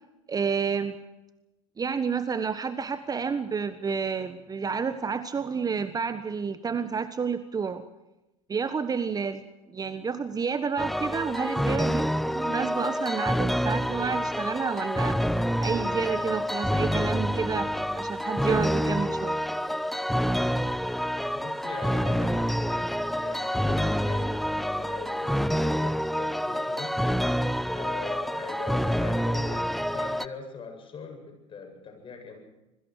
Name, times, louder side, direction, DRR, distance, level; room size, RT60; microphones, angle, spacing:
voice 1, 0.3-0.9 1.8-7.8 8.5-9.4 9.7-15.2 15.6-19.4 20.2-20.4, right 5 dB, 20° right, 12 dB, 1.3 m, -30 dB
sound 1, 10.8-30.3, equal, ahead, 0.9 m, -27 dB
voice 2, 21.3-27.0 27.7-32.4, left 5 dB, 30° left, 4 dB, 8.0 m, -41 dB
26.0 x 22.5 x 4.9 m, 0.98 s
hypercardioid pair, 80°, 17 cm